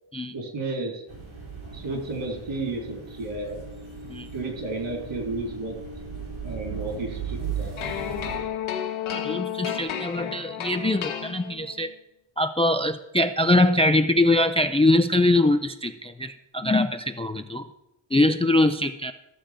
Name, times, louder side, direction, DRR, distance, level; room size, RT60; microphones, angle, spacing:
voice 1, 0.3-1.0 1.7-3.6 4.3-5.8 6.4-7.8, right 2 dB, 70° right, 1 dB, 3.8 m, -32 dB
sound 1, 1.1-8.4, right 6 dB, 85° right, 4.2 m, -37 dB
sound 2, 7.8-11.9, left 9 dB, 80° left, 1.4 m, -32 dB
voice 2, 9.1-11.9 12.4-17.7 18.1-19.1, left 1 dB, 15° left, 9 dB, 0.3 m, -22 dB
13.5 x 7.3 x 5.1 m, 0.90 s
wide cardioid pair, 130°, 47 cm